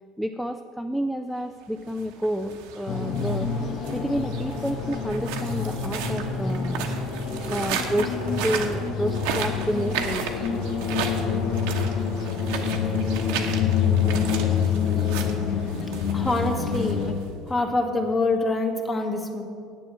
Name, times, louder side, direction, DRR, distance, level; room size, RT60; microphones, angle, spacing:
voice 1, 0.2-6.9 7.5-8.2 8.4-10.3, equal, ahead, 6 dB, 0.4 m, -29 dB
sound 1, 1.8-17.5, right 6 dB, 80° right, 1.1 m, -35 dB
sound 2, 2.9-17.1, left 6 dB, 60° left, 1.2 m, -27 dB
voice 2, 16.1-17.0 17.5-19.4, left 2 dB, 20° left, 3 dB, 1.6 m, -25 dB
8.9 x 7.7 x 7.5 m, 2.4 s
supercardioid pair, 100°, 0 cm